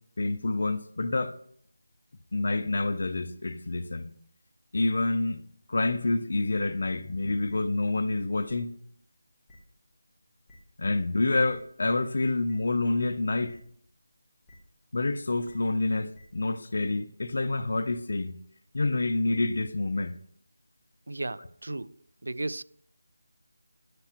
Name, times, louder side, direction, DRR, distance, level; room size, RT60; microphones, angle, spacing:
voice 1, 0.2-1.3 2.3-4.1 4.7-5.4 5.7-8.7 10.8-13.6 14.9-18.3 18.7-20.1, left 2 dB, 50° left, 0.6 m, -27 dB
sound 1, 6.5-6.6 7.5-7.6 8.5-8.6 9.5-9.6 10.5-10.6 11.5-11.6 12.5-12.6 13.5-13.6 14.5-14.6 15.5-15.6 16.1-16.2, left 2 dB, 5° left, 1.2 m, -53 dB
voice 2, 21.1-22.0 22.2-22.6, right 2 dB, 90° right, 0.4 m, -34 dB
11.0 x 7.8 x 3.0 m
figure-of-eight pair, 175°, 0 cm